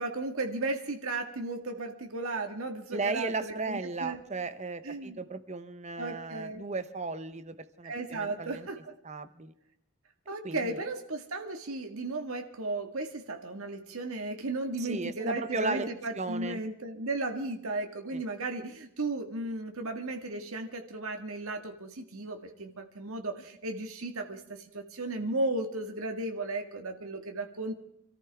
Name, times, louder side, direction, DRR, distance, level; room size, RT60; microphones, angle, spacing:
voice 1, 0.0-4.2 4.8-5.2 6.0-6.6 7.8-8.9 10.3-27.8, right 2 dB, 70° right, 4 dB, 1.8 m, -35 dB
voice 2, 2.9-8.7 9.0-9.5 10.4-10.8 14.8-15.9 16.1-16.6 18.1-18.2, right 3 dB, 30° right, 12 dB, 0.8 m, -35 dB
27.0 x 14.0 x 3.5 m, 0.73 s
head